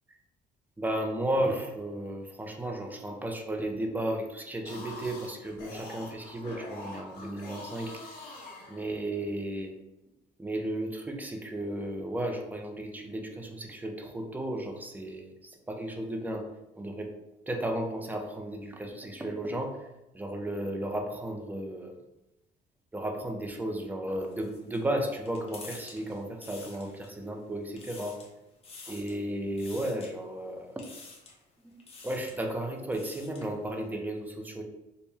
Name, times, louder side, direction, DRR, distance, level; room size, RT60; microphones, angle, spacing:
voice 1, 0.8-8.0 8.7-9.7 10.4-16.5 16.8-17.1 17.5-19.9 20.1-21.9 22.9-28.2 28.9-30.8 31.6-34.6, right 1 dB, 10° right, 3 dB, 0.5 m, -34 dB
sound 1, 4.5-9.3, left 2 dB, 60° left, 1.3 m, -45 dB
sound 2, 24.2-27.3 27.6-28.3 28.6-29.2 29.6-30.1 30.8-31.4 31.8-32.4 32.8-33.5, left 3 dB, 35° left, 0.8 m, -49 dB
4.3 x 2.1 x 3.4 m, 0.98 s
cardioid pair, 130°, 18 cm